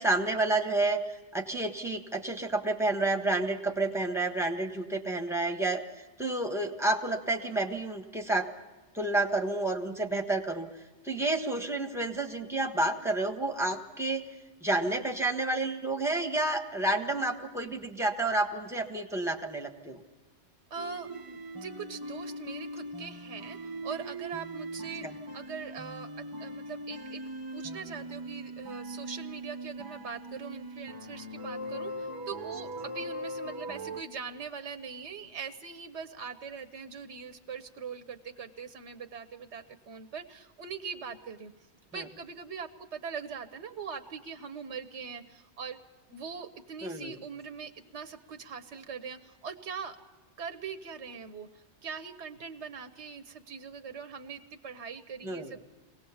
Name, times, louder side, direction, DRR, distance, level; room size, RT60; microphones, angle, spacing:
voice 1, 0.0-8.5 8.9-10.7 11.0-14.2 14.6-20.0 25.0-25.1 41.9-42.0 46.8-47.1 55.2-55.5, right 2 dB, ahead, 4 dB, 1.4 m, -30 dB
sound 1, 20.7-34.0, right 1 dB, 20° right, 0.9 m, -40 dB
voice 2, 20.7-25.0 25.3-27.2 27.5-41.5 41.9-45.8 46.1-50.0 50.4-55.6, right 6 dB, 80° right, 9 dB, 1.2 m, -42 dB
23.0 x 18.0 x 7.1 m, 1.2 s
omnidirectional pair, 1.2 m